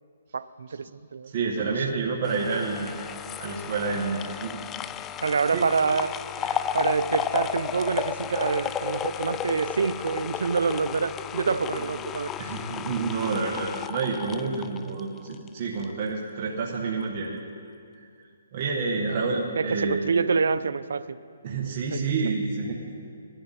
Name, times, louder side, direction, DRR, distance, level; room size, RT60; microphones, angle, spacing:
voice 1, 0.3-1.3 1.6-1.9 5.2-12.3 19.1-19.2 19.6-21.2 21.9-22.4, right 5 dB, 75° right, 15 dB, 0.5 m, -27 dB
voice 2, 1.3-2.9 3.4-4.5 5.5-5.6 12.4-17.3 18.5-20.0 21.4-22.9, right 4 dB, 35° right, -2 dB, 1.6 m, -28 dB
sound 1, 2.2-15.5 15.8-15.9, left 9 dB, 15° left, 0.3 m, -33 dB
19.0 x 12.5 x 4.4 m, 2.3 s
hypercardioid pair, 160°, 0 cm